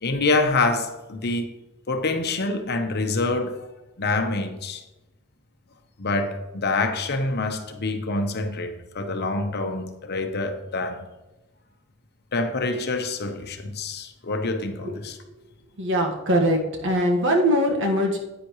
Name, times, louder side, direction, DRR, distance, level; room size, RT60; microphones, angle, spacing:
voice 1, 0.0-1.5 1.9-3.7 4.0-4.8 6.0-11.1 12.3-15.2, left 3 dB, 50° left, 1.0 m, -26 dB
voice 2, 15.8-18.2, equal, 60° right, 1.6 m, -21 dB
10.0 x 9.1 x 3.2 m
head